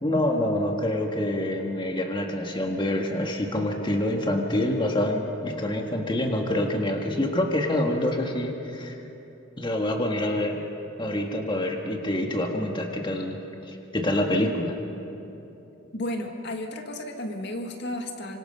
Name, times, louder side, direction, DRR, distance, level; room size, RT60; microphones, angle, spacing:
voice 1, 0.0-9.0 9.6-10.6 11.0-13.4 13.7-14.8, left 1 dB, 25° left, 2 dB, 1.6 m, -26 dB
voice 2, 15.9-18.4, left 1 dB, 60° left, 4 dB, 1.9 m, -33 dB
26.0 x 25.5 x 5.6 m, 3.0 s
head